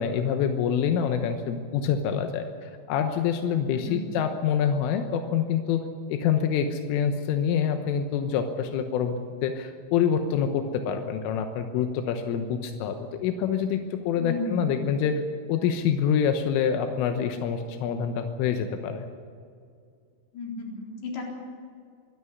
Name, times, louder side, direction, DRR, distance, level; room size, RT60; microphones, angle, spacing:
voice 1, 0.0-5.8 6.1-15.2 15.5-19.1, left 7 dB, 90° left, 6 dB, 3.6 m, -26 dB
voice 2, 3.8-4.2 14.2-14.7 20.3-21.2, left 3 dB, 55° left, -1 dB, 5.8 m, -34 dB
24.0 x 12.5 x 9.6 m, 2.2 s
omnidirectional pair, 5.8 m